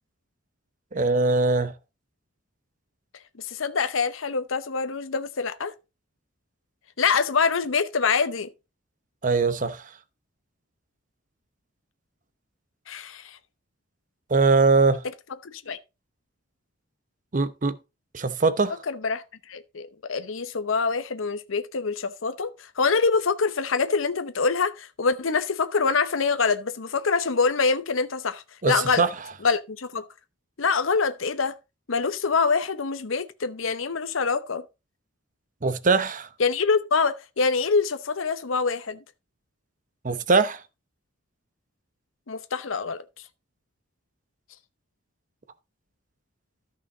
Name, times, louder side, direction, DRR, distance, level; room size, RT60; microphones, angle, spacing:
voice 1, 0.9-1.7 9.2-9.8 14.3-15.0 17.3-17.8 18.1-18.7 28.6-29.1 35.6-36.3 40.0-40.6, right 4 dB, 40° right, 0.8 m, -21 dB
voice 2, 3.4-5.7 7.0-8.5 12.9-13.4 15.4-15.8 18.9-29.0 29.4-30.1 30.6-31.5 31.9-34.6 36.4-39.0 42.3-43.0, left 4 dB, 85° left, 0.8 m, -25 dB
13.5 x 5.8 x 3.9 m
head